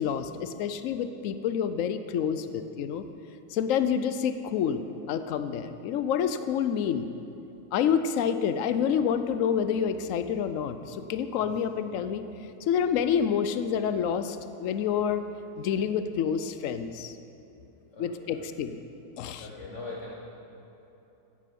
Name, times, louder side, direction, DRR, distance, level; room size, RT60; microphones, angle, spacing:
voice 1, 0.0-3.0 3.5-7.1 7.7-12.2 12.7-15.2 15.6-17.1 18.0-18.8 19.2-19.5, left 8 dB, 85° left, 10 dB, 0.7 m, -28 dB
voice 2, 17.9-18.6 19.4-20.1, left 3 dB, 45° left, -3 dB, 1.4 m, -41 dB
14.5 x 10.0 x 5.3 m, 3.0 s
omnidirectional pair, 2.0 m